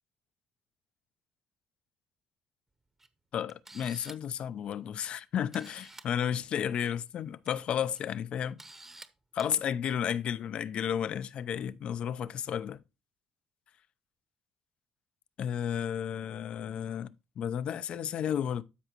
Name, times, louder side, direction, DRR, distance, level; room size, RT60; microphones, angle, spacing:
Camera, 3.0-3.1 3.5-4.3 5.2-5.3 5.5-6.1 7.2-7.5 7.9-8.0 8.6-9.1 9.4-9.5, right 2 dB, 15° right, 0.9 m, -50 dB
voice 1, 3.3-8.6 9.3-12.8 15.4-17.1 17.4-18.6, left 9 dB, 55° left, 0.5 m, -32 dB
12.5 x 5.0 x 2.9 m
cardioid pair, 120°, 2 cm